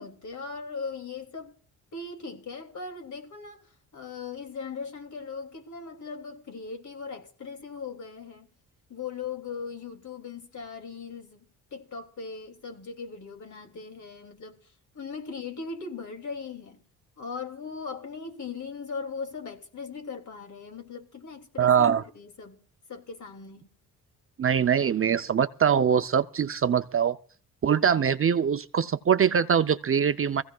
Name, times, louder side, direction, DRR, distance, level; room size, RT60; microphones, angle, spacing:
voice 1, 0.0-1.6 1.9-8.5 8.9-11.5 11.7-16.8 17.2-22.6 22.9-23.7, left 5 dB, 50° left, 2.7 m, -39 dB
voice 2, 21.6-22.0 24.4-27.2 27.6-30.4, right 7 dB, 35° right, 0.6 m, -23 dB
22.0 x 15.5 x 2.4 m
supercardioid pair, 65°, 38 cm